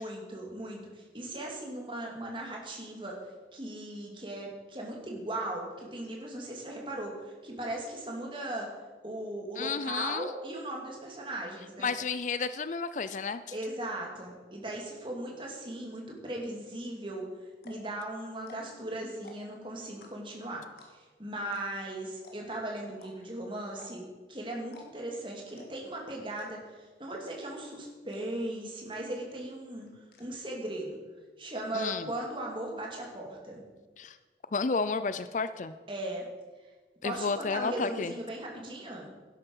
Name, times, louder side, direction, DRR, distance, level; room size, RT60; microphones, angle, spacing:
voice 1, 0.0-3.2 3.5-8.7 9.0-11.9 13.5-17.3 17.6-31.0 31.4-33.6 35.9-36.2 37.0-39.1, right 1 dB, 30° right, -1 dB, 2.6 m, -38 dB
voice 2, 9.6-10.3 11.8-13.4 31.7-32.1 34.0-34.2 34.5-35.7 37.0-38.1, left 4 dB, 45° left, 13 dB, 0.4 m, -31 dB
sound 1, 17.1-17.2 17.5-17.9 18.4-18.8 19.1-19.6 20.0-20.4 20.8-21.1 21.5-21.6 21.9-22.0 22.2-22.6 23.0-23.1 23.7-24.2 24.6-24.9 25.1-25.2 25.6-25.9 26.4-26.8 27.2-27.6 28.1-28.2 28.5-28.6 28.9-29.3 29.6-30.2, left 2 dB, 60° left, 2.3 m, -52 dB
12.0 x 11.0 x 5.5 m, 1.3 s
head